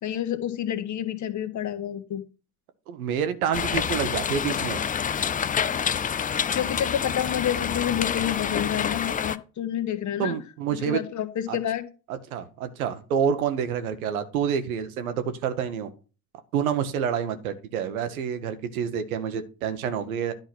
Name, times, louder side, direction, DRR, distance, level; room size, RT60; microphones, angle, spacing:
voice 1, 0.0-2.2 6.5-10.3 10.9-11.8, left 10 dB, 45° left, 1.3 m, -29 dB
voice 2, 2.9-4.8 10.2-11.0 11.5-11.6 12.1-15.9 16.5-20.3, right 7 dB, 80° right, 1.1 m, -28 dB
sound 1, 3.5-9.4, left 8 dB, 20° left, 0.4 m, -27 dB
10.5 x 3.9 x 6.0 m
hypercardioid pair, 65°, 42 cm